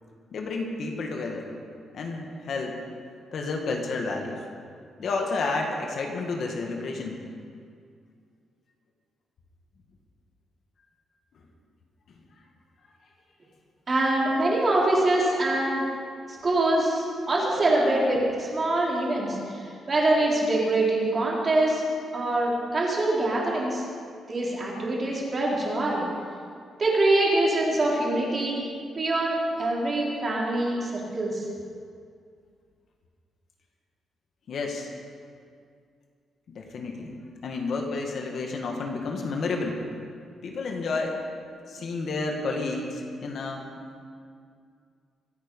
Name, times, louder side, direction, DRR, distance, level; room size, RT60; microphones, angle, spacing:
voice 1, 0.3-1.5 1.9-2.8 3.3-4.4 5.0-7.2 34.5-34.9 36.5-37.1 37.4-39.8 40.4-41.2 41.7-43.8, left 3 dB, 50° left, 2 dB, 1.9 m, -30 dB
voice 2, 13.9-15.8 16.3-21.8 22.1-23.8 24.3-26.0 26.8-28.6 28.9-31.4, right 2 dB, 30° right, -4 dB, 3.8 m, -24 dB
25.0 x 9.3 x 5.4 m, 2.2 s
cardioid pair, 155°, 0 cm